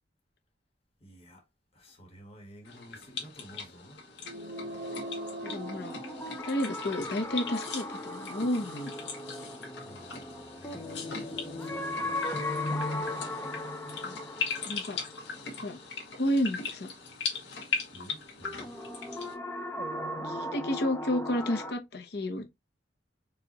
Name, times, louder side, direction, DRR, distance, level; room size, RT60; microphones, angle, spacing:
voice 1, 1.0-1.4 1.7-4.0 9.8-12.2 17.9-18.7, right 1 dB, 35° left, 1.3 m, -52 dB
sound 1, 2.6-19.3, left 5 dB, 90° left, 1.2 m, -40 dB
sound 2, 4.2-6.9, right 1 dB, 55° right, 1.0 m, -41 dB
voice 2, 5.4-6.0 6.4-8.9 14.0-14.2 14.7-15.0 15.6-15.8 16.1-16.9 20.2-22.5, left 1 dB, 65° left, 0.9 m, -31 dB
sound 3, 5.5-16.3 18.4-21.7, left 1 dB, 15° left, 0.6 m, -37 dB
4.9 x 2.4 x 2.9 m
head